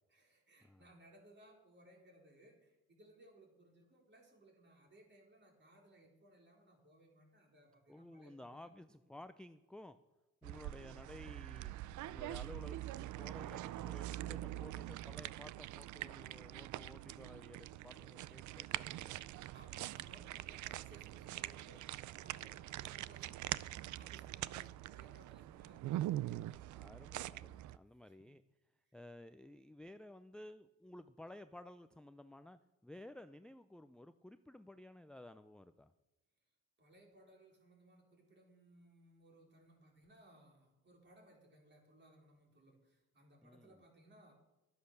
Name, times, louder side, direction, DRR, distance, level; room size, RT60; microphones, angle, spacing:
voice 1, 0.1-8.7 19.5-26.3 28.0-28.3 28.8-29.0 36.8-44.3, right 1 dB, 35° right, 0 dB, 4.3 m, -64 dB
voice 2, 7.9-10.0 10.4-19.2 26.7-28.4 28.9-35.9 43.4-43.8, left 1 dB, 5° left, 10 dB, 0.5 m, -55 dB
sound 1, 10.4-27.8, right 14 dB, 75° right, 0.5 m, -44 dB
12.0 x 10.0 x 6.7 m, 1.0 s
cardioid pair, 90°, 30 cm